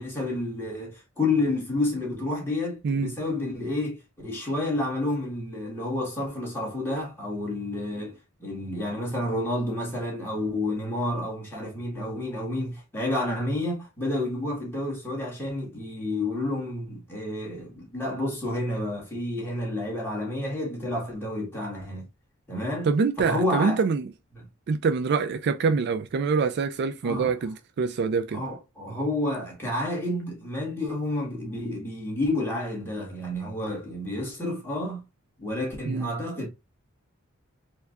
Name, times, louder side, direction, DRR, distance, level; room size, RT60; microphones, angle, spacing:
voice 1, 0.0-22.1 22.5-22.9 23.2-23.8 24.3-24.5 27.0-27.3 28.3-35.0 35.4-36.5, left 1 dB, 10° left, 1.6 m, -30 dB
voice 2, 22.8-24.1 24.7-28.4 35.9-36.1, right 5 dB, 50° right, 0.3 m, -25 dB
4.5 x 2.3 x 2.4 m
head